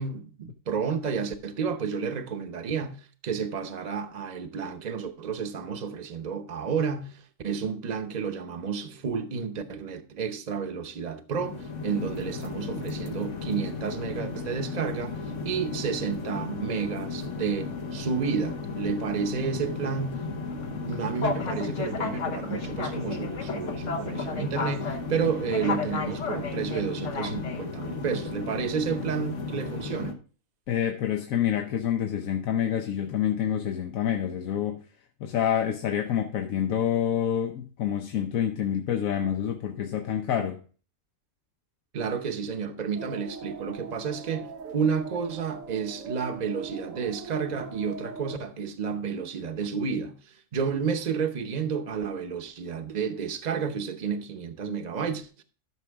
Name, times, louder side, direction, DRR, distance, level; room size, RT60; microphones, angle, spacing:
voice 1, 0.0-3.0 3.2-15.2 15.4-20.3 20.7-30.1 41.9-44.5 44.7-50.2 50.5-55.4, right 6 dB, 35° right, 0.8 m, -31 dB
sound 1, 11.3-30.1, left 4 dB, 65° left, 1.4 m, -33 dB
voice 2, 30.7-34.8 35.2-40.6, left 9 dB, 85° left, 1.2 m, -27 dB
sound 2, 43.0-48.4, right 5 dB, 80° right, 1.1 m, -41 dB
12.5 x 6.1 x 3.5 m
omnidirectional pair, 1.4 m